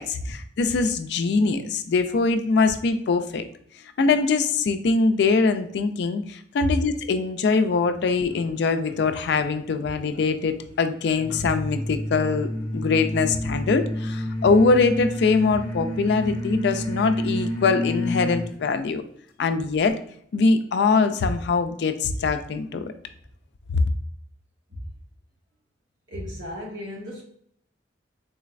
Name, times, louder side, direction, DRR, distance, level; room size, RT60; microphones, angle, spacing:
voice 1, 0.0-3.4 4.0-19.0 19.4-20.0 20.3-22.9, left 4 dB, 65° left, 9 dB, 0.3 m, -23 dB
sound 1, 11.1-18.5, left 1 dB, 25° left, 0.6 m, -29 dB
voice 2, 26.1-27.2, left 1 dB, 85° right, -3 dB, 1.4 m, -35 dB
3.9 x 3.1 x 2.4 m, 0.64 s
head